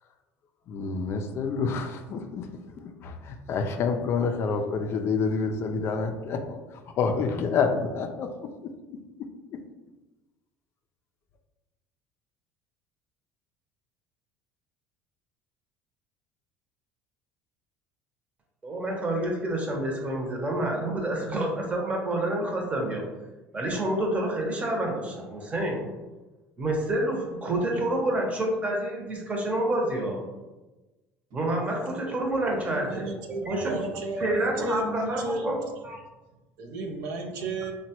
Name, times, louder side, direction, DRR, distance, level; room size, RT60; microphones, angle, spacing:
voice 1, 0.7-2.5 2.8-9.6, left 5 dB, 50° left, 5 dB, 0.3 m, -29 dB
voice 2, 18.6-23.0 23.5-25.9 26.6-30.2 31.3-33.8 34.2-35.6 35.8-36.0, right 1 dB, 25° right, 0 dB, 0.8 m, -28 dB
voice 3, 32.5-35.5 36.6-37.7, right 2 dB, 70° right, 3 dB, 0.4 m, -33 dB
2.9 x 2.2 x 2.9 m, 1.1 s
supercardioid pair, 90°, 5 cm